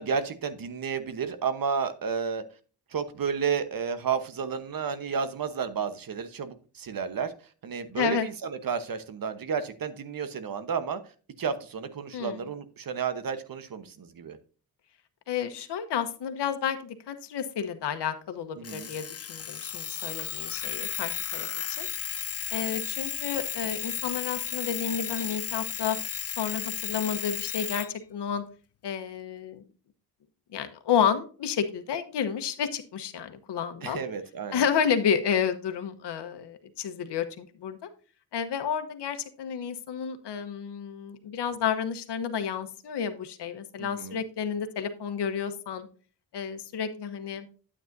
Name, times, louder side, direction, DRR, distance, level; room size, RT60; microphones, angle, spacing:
voice 1, 0.0-2.4 2.9-7.3 7.6-11.0 11.4-14.4 18.6-18.9 33.8-34.6 43.8-44.2, right 6 dB, 55° right, 11 dB, 1.1 m, -31 dB
voice 2, 8.0-8.3 12.1-12.4 15.3-21.5 21.8-21.9 22.5-26.0 26.3-28.4 28.8-29.6 30.5-34.0 34.5-37.9 38.3-45.9 46.3-47.5, left 7 dB, 75° left, 9 dB, 1.1 m, -31 dB
Alarm, 18.6-27.9, left 8 dB, 35° left, 0.6 m, -34 dB
9.3 x 8.6 x 2.6 m, 0.38 s
cardioid pair, 70°, 41 cm